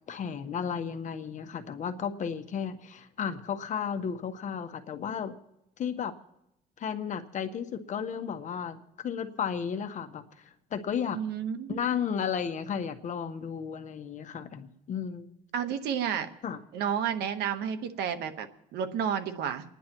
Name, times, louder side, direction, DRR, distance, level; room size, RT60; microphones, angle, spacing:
voice 1, 0.1-5.4 5.8-6.1 6.8-10.2 10.7-11.2 11.7-15.3 16.4-16.6, left 7 dB, 45° left, 8 dB, 1.1 m, -33 dB
voice 2, 11.1-11.8 15.5-16.3 16.7-18.5 18.7-19.6, right 8 dB, 75° right, 8 dB, 1.2 m, -31 dB
29.5 x 10.5 x 3.0 m, 0.86 s
cardioid pair, 110°, 17 cm